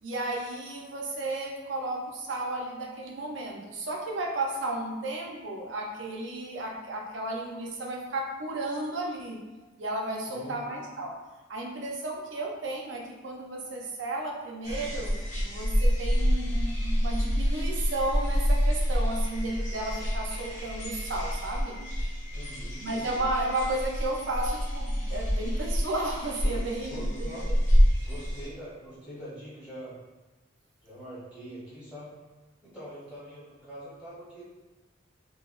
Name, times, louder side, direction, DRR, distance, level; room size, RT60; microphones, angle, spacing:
voice 1, 0.0-9.4 9.8-11.1 11.5-21.7 22.8-27.4, right 2 dB, 75° right, -1 dB, 0.6 m, -33 dB
sound 1, 14.6-28.5, equal, 40° left, 0.7 m, -27 dB
voice 2, 22.3-22.8 26.4-27.5 28.0-29.9 30.8-32.1 32.6-34.4, equal, 15° left, -11 dB, 1.0 m, -43 dB
3.9 x 2.2 x 2.4 m, 1.2 s
head